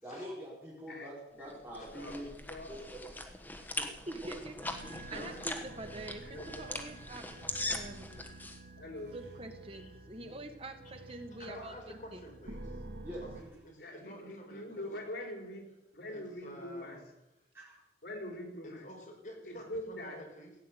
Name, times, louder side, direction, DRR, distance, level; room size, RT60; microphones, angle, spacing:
voice 1, 0.0-2.4 2.7-3.2 3.8-3.9 4.8-5.2 13.0-13.5 17.5-17.8, equal, 10° right, -8 dB, 4.3 m, -45 dB
voice 2, 0.9-1.6 1.9-2.1 2.4-2.7 6.2-6.8 8.8-9.1 13.8-15.6 15.9-17.0 18.0-18.9 19.5-20.2, left 1 dB, 70° left, 1 dB, 5.1 m, -43 dB
sound 1, 1.5-8.6, left 2 dB, 10° left, 1.3 m, -41 dB
voice 3, 4.0-7.2 7.7-8.5 9.1-12.2, right 2 dB, 30° right, 6 dB, 1.7 m, -46 dB
sound 2, 4.6-13.4, right 2 dB, 70° right, 2.1 m, -49 dB
voice 4, 11.5-12.8 13.2-14.8 16.1-17.0 18.6-20.5, equal, 45° left, 0 dB, 5.2 m, -50 dB
16.5 x 8.4 x 9.3 m, 0.94 s
head